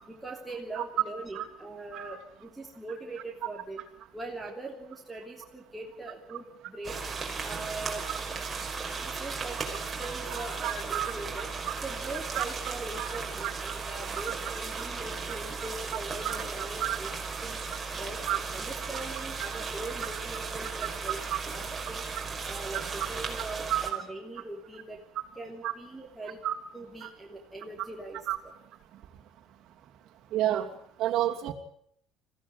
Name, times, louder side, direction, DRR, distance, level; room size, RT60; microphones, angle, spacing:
voice 1, 0.2-3.8 4.1-7.0 7.4-8.0 8.9-11.5 11.8-17.6 18.0-21.2 21.5-22.0 22.4-25.0 25.4-26.4 26.7-28.3, right 2 dB, 5° right, -2 dB, 3.2 m, -41 dB
sound 1, 6.8-23.9, right 4 dB, 20° right, 5.1 m, -36 dB
voice 2, 10.3-11.1 11.7-11.8 12.3-12.4 13.0-13.1 13.4-13.5 16.2-16.4 16.8-17.0 18.3-18.4 19.4-19.6 20.0-20.1 21.3-21.4 23.7-24.0 25.6-25.7 26.4-26.6 27.0-27.1 28.3-28.4 30.3-30.7 31.0-31.5, right 13 dB, 60° right, 1 dB, 2.7 m, -30 dB
21.5 x 16.0 x 9.8 m, 0.68 s
cardioid pair, 110°, 0 cm